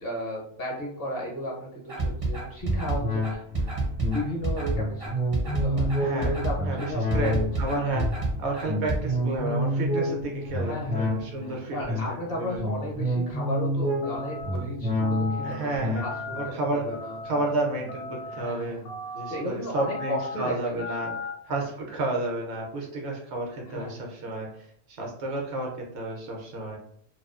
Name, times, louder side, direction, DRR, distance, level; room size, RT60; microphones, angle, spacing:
voice 1, 0.0-3.4 3.7-5.1 5.6-7.7 10.6-11.3 11.7-16.3 16.7-17.2 18.3-18.9 19.3-21.2 21.5-21.7 23.7-24.0, equal, 55° left, -2 dB, 0.8 m, -35 dB
sound 1, 1.9-9.0, right 2 dB, 40° right, 0.5 m, -28 dB
sound 2, 2.6-18.4 18.8-18.9, equal, 10° left, 0.4 m, -30 dB
voice 2, 6.0-6.3 6.6-8.0 8.4-12.0 12.4-12.6 15.4-16.0 16.3-16.9 17.2-18.8 19.1-21.1 21.5-24.5 24.9-26.8, right 2 dB, 65° right, 0 dB, 0.8 m, -31 dB
sound 3, 14.0-14.6 15.0-15.5 16.0-16.5 16.9-17.5 17.9-18.4 18.9-19.4 19.8-20.4 20.8-21.3, left 3 dB, 85° left, 0.3 m, -36 dB
2.3 x 2.2 x 2.3 m, 0.68 s
omnidirectional pair, 1.3 m